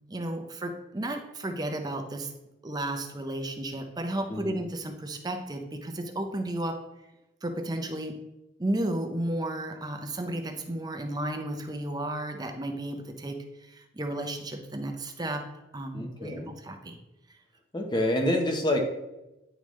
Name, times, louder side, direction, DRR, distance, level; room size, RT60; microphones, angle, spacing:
voice 1, 0.1-2.3 2.6-6.8 7.4-8.2 8.6-17.0, right 1 dB, 20° right, 5 dB, 0.6 m, -33 dB
voice 2, 4.3-4.6 15.9-16.5 17.7-18.8, left 1 dB, 25° left, 2 dB, 0.8 m, -27 dB
9.9 x 3.5 x 3.1 m, 0.98 s
head